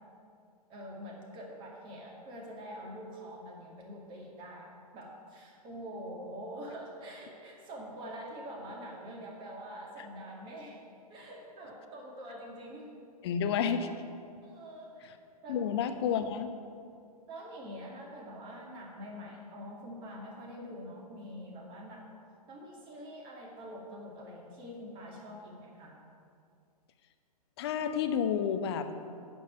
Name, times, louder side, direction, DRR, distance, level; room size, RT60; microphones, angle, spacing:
voice 1, 0.7-10.8 11.1-12.9 14.4-15.1 15.4-15.6 17.3-22.1 22.5-26.0, equal, 25° right, -1 dB, 2.2 m, -45 dB
voice 2, 13.2-13.9 15.5-16.5 27.6-28.9, left 7 dB, 40° left, 9 dB, 0.9 m, -30 dB
9.3 x 7.3 x 8.4 m, 2.4 s
figure-of-eight pair, 115°, 20 cm